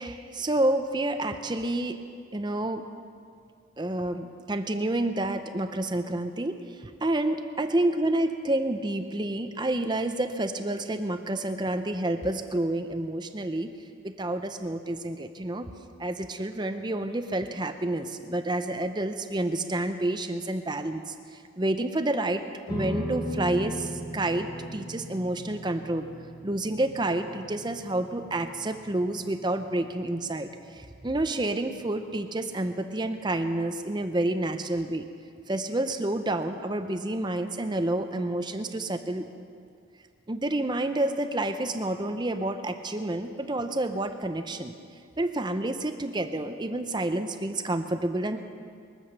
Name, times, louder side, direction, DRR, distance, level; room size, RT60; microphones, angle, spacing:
voice 1, 0.0-2.0 2.3-2.8 3.8-13.7 14.0-15.7 16.0-21.1 21.6-26.1 26.4-30.5 30.8-35.1 35.5-39.3 40.3-44.7 45.2-48.4, right 1 dB, 20° right, 7 dB, 0.6 m, -29 dB
sound 1, 22.7-35.2, equal, 20° left, 2.3 m, -40 dB
23.0 x 7.9 x 6.6 m, 2.3 s
head